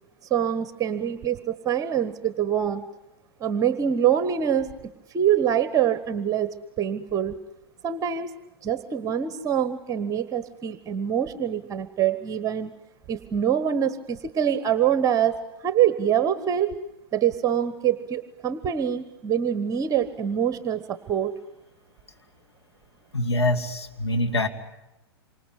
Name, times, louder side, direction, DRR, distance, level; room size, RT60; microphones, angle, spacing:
voice 1, 0.3-2.8 3.4-4.7 5.1-7.4 7.8-8.3 8.6-12.7 13.1-16.7 17.1-21.4, right 9 dB, 25° right, 14 dB, 1.2 m, -25 dB
voice 2, 23.1-24.5, left 1 dB, 85° left, 4 dB, 2.6 m, -24 dB
27.5 x 25.5 x 8.3 m, 0.96 s
figure-of-eight pair, 100°, 13 cm